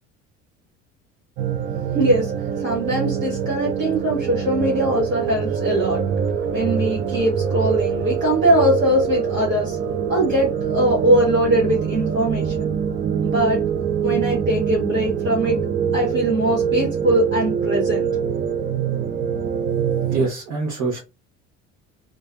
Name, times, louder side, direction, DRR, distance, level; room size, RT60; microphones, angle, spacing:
sound 1, 1.4-20.3, right 7 dB, 30° right, 0.4 m, -24 dB
voice 1, 1.9-6.0 6.5-9.8 10.1-12.7 13.2-13.6 14.0-15.6 15.9-18.1, right 1 dB, 85° right, 1.7 m, -21 dB
voice 2, 20.1-21.0, right 3 dB, 55° right, 1.4 m, -24 dB
3.6 x 3.2 x 2.5 m
figure-of-eight pair, 60°, 38 cm